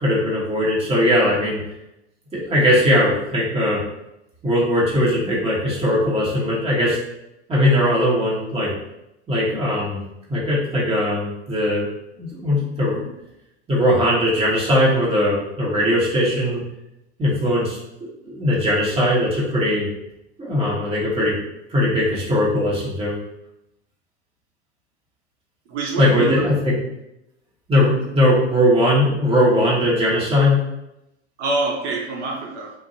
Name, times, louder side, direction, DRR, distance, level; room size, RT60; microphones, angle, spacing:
voice 1, 0.0-1.6 2.3-3.8 4.4-7.0 7.5-8.7 9.3-10.0 10.3-11.9 12.2-13.1 13.7-16.6 17.2-17.8 18.2-19.9 20.4-21.4 21.7-23.1 26.0-26.7 27.7-30.6, left 1 dB, 15° right, -7 dB, 1.0 m, -19 dB
voice 2, 25.7-26.5 31.4-32.7, right 3 dB, 70° right, -2 dB, 0.7 m, -25 dB
2.5 x 2.0 x 2.6 m, 0.87 s
hypercardioid pair, 95°, 35 cm